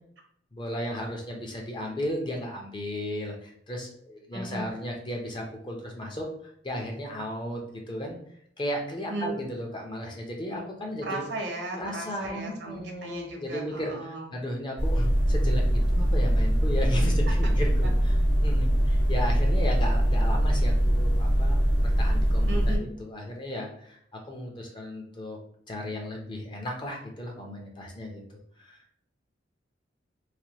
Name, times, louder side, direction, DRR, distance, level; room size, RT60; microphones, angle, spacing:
voice 1, 0.5-6.3 6.6-7.6 7.9-8.2 8.6-11.3 11.7-13.9 14.3-18.2 18.4-22.6 23.0-24.0 24.3-25.4 25.7-28.2 28.6-28.8, equal, 25° left, 0 dB, 0.6 m, -35 dB
voice 2, 4.3-4.6 9.1-9.3 11.0-14.3 17.4-17.5 17.8-17.9 22.5-22.8, right 2 dB, 65° right, 1 dB, 0.8 m, -36 dB
sound 1, 14.8-22.8, equal, 65° left, 1.5 m, -23 dB
3.2 x 2.2 x 2.8 m, 0.67 s
head